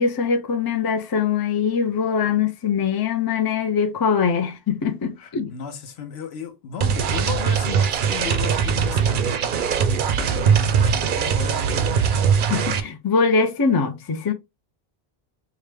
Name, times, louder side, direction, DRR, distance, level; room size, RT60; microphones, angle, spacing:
voice 1, 0.0-5.5 12.5-14.3, left 5 dB, 35° left, 0.3 m, -22 dB
voice 2, 5.2-9.4 9.7-12.4, left 7 dB, 75° left, 0.9 m, -35 dB
sound 1, 6.8-12.8, right 7 dB, 60° right, 0.6 m, -21 dB
4.8 x 2.2 x 3.2 m
omnidirectional pair, 1.1 m